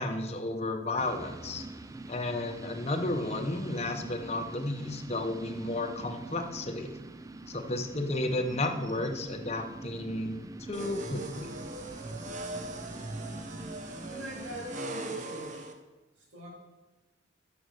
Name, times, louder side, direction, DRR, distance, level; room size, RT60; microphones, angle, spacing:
voice 1, 0.0-1.7 2.1-7.0 7.5-10.4 10.7-11.5, left 2 dB, 30° left, 5 dB, 0.9 m, -33 dB
sound 1, 1.0-14.8, right 2 dB, 15° right, 0.4 m, -45 dB
sound 2, 10.7-15.7, right 2 dB, 40° right, 0.9 m, -39 dB
voice 2, 14.1-15.7 16.3-16.5, equal, 75° right, -2 dB, 3.0 m, -43 dB
10.5 x 6.2 x 6.4 m, 1.2 s
head